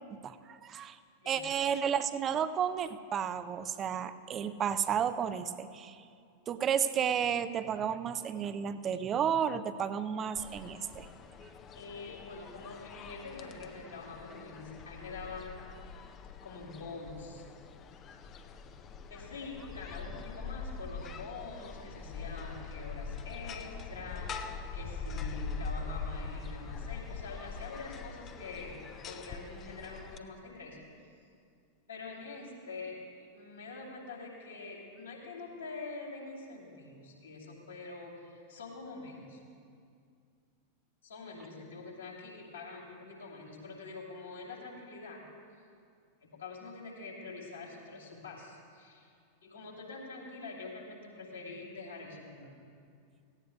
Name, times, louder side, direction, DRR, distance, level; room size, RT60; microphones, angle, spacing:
voice 1, 0.1-1.0 1.3-6.0 6.5-11.1, right 8 dB, 25° right, 12 dB, 0.5 m, -32 dB
sound 1, 10.4-30.2, left 5 dB, 30° left, 0.6 m, -43 dB
voice 2, 11.7-15.6 16.4-17.4 18.2-18.3 19.1-28.8 29.0-30.8 31.9-33.0 33.3-39.4 41.0-45.2 46.2-49.1 49.4-52.5, left 3 dB, 70° left, -3 dB, 2.8 m, -45 dB
18.0 x 15.5 x 2.3 m, 2.3 s
figure-of-eight pair, 90°, 0 cm